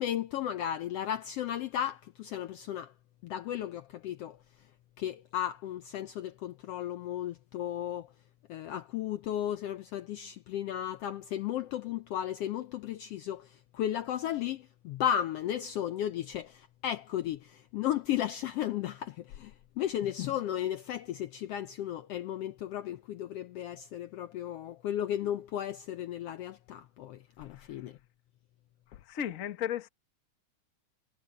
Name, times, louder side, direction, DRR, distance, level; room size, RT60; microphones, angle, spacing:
voice 1, 0.0-2.9 3.2-4.4 5.0-8.1 8.5-28.0, left 11 dB, 75° left, 1.4 m, -34 dB
voice 2, 27.5-27.9 28.9-29.9, left 10 dB, 55° left, 0.8 m, -36 dB
omnidirectional pair, 3.4 m